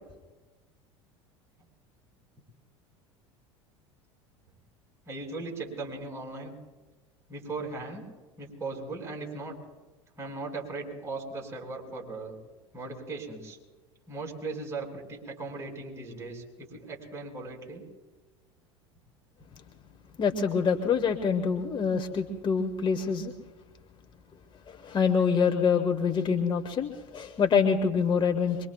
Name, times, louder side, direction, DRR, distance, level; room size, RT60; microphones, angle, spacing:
voice 1, 5.1-6.5 7.3-8.0 8.4-9.6 10.2-12.4 12.7-13.6 14.1-17.8, right 3 dB, 20° right, -1 dB, 5.5 m, -38 dB
voice 2, 20.2-23.3 24.7-28.7, left 6 dB, 30° left, 5 dB, 1.3 m, -26 dB
25.0 x 23.0 x 2.4 m, 1.2 s
figure-of-eight pair, 75°, 15 cm